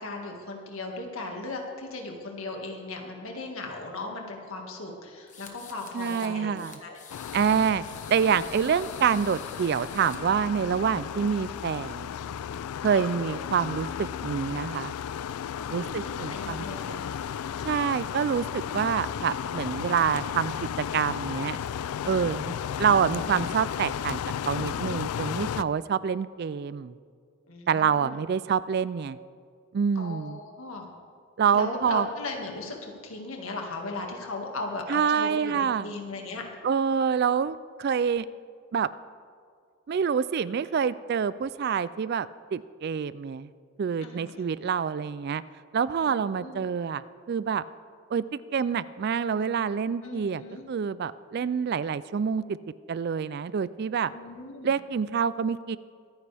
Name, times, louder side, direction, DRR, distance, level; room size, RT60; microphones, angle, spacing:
voice 1, 0.0-7.0 12.9-13.1 15.6-17.1 27.4-28.2 30.0-30.9 31.5-36.4 44.0-44.5 46.0-46.6 50.0-50.7 54.1-54.7, left 2 dB, 70° left, 1 dB, 2.0 m, -37 dB
sound 1, 5.3-6.3 6.6-10.2, left 6 dB, 35° left, 1.3 m, -47 dB
voice 2, 5.9-6.7 7.3-7.8 8.1-12.1 12.8-14.9 15.7-16.6 17.6-21.6 22.0-24.2 24.4-26.9 27.7-29.2 29.7-30.4 31.4-32.1 34.9-35.9 36.6-38.3 38.7-38.9 39.9-43.5 43.8-45.4 45.7-47.0 47.3-47.6 48.1-50.4 50.7-52.6 52.9-54.1 54.6-55.8, right 6 dB, 45° right, 17 dB, 0.3 m, -27 dB
sound 2, 7.1-25.6, left 8 dB, 85° left, 0.3 m, -34 dB
24.0 x 9.7 x 3.5 m, 2.1 s
head